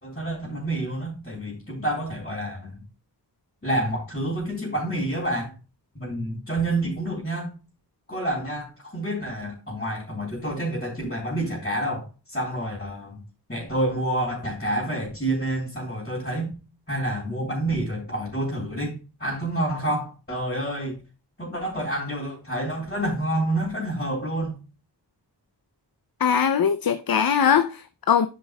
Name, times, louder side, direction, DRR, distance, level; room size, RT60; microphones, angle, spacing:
voice 1, 0.0-2.8 3.6-5.5 5.9-7.5 8.1-13.2 13.5-16.5 16.9-21.0 21.4-24.6, right 1 dB, 25° left, 3.4 m, -28 dB
voice 2, 26.2-28.3, left 7 dB, 55° left, 0.6 m, -21 dB
12.0 x 5.3 x 2.3 m
wide cardioid pair, 95°, 42 cm